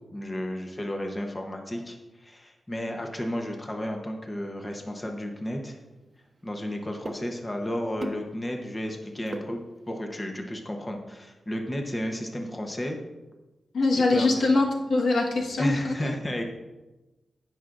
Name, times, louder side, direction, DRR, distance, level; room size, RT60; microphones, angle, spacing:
voice 1, 0.1-5.8 6.4-13.0 14.1-14.3 15.6-16.4, equal, 15° left, 3 dB, 0.9 m, -33 dB
sound 1, 5.0-10.1, right 2 dB, 30° right, 0.9 m, -43 dB
voice 2, 13.7-16.1, left 2 dB, 90° left, -1 dB, 1.4 m, -23 dB
18.0 x 6.0 x 2.6 m, 1.1 s
wide cardioid pair, 160°, 0 cm